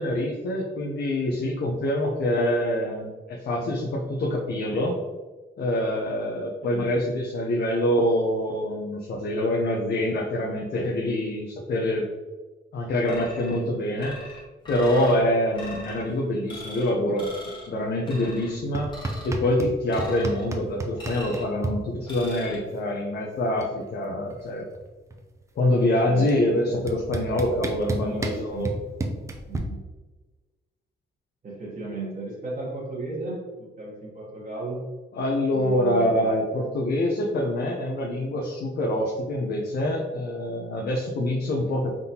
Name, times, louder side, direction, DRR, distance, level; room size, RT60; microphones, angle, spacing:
voice 1, 0.0-3.1 3.4-5.0 5.6-12.1 12.7-14.2 14.7-18.9 19.2-24.7 25.6-28.7 35.1-42.0, left 1 dB, 60° left, -1 dB, 0.6 m, -25 dB
sound 1, 13.1-13.6 14.0-15.2 15.5-16.0 16.5-16.9 17.2-17.7 18.1-18.5 18.9-19.4 19.9-20.5 21.0-21.5 22.1-22.6, left 1 dB, 25° left, 1.2 m, -41 dB
sound 2, 18.7-19.7 20.0-21.7 23.0-23.1 23.4-23.8 24.0-25.4 26.3-26.4 26.9-29.6, right 2 dB, 15° right, 0.4 m, -31 dB
voice 2, 27.8-28.7 29.5-29.8 31.4-34.9 35.5-36.3, right 3 dB, 45° right, -6 dB, 1.1 m, -35 dB
3.9 x 3.6 x 2.8 m, 1.3 s
cardioid pair, 130°, 19 cm